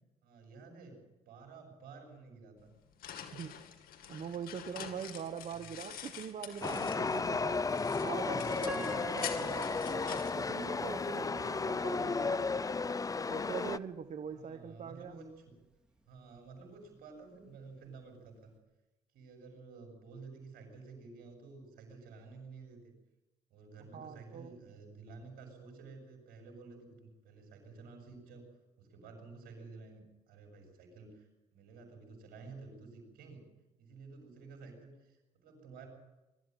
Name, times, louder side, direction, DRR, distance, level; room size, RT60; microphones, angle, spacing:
voice 1, 0.2-1.0 1.3-2.7 5.5-5.8 14.3-15.5 16.1-18.5 19.1-22.9 23.5-28.4 28.8-33.4 33.8-35.9, right 4 dB, 75° right, 4 dB, 7.0 m, -52 dB
sound 1, 2.6-7.3 7.7-11.2, left 9 dB, 75° left, 2.2 m, -46 dB
voice 2, 4.1-7.7 8.0-12.5 13.3-15.1 23.9-24.6, right 7 dB, 50° right, 8 dB, 1.2 m, -43 dB
Chatter / Subway metro underground, 6.6-13.8, left 4 dB, 25° left, 0.6 m, -34 dB
Piano, 8.7-11.7 12.2-12.3 13.0-13.2, left 2 dB, 5° right, 4.1 m, -48 dB
22.5 x 13.0 x 9.2 m, 1.1 s
supercardioid pair, 75°, 15 cm